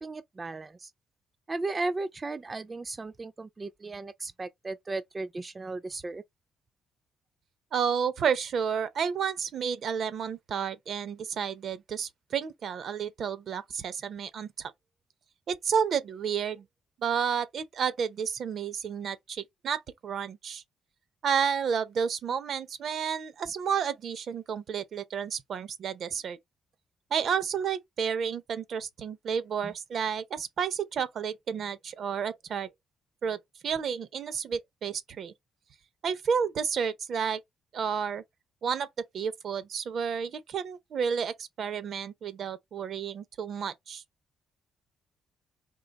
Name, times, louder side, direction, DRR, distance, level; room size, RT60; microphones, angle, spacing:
voice 1, 0.0-0.9 1.5-6.2 29.6-29.7, right 3 dB, 25° right, 0.4 m, -35 dB
voice 2, 7.7-14.7 15.5-16.7 17.0-20.6 21.2-26.4 27.1-32.7 33.2-33.4 33.6-35.3 36.0-37.4 37.7-38.2 38.6-44.0, right 7 dB, 60° right, 0.7 m, -31 dB
3.8 x 2.9 x 4.0 m
cardioid pair, 90°, 0 cm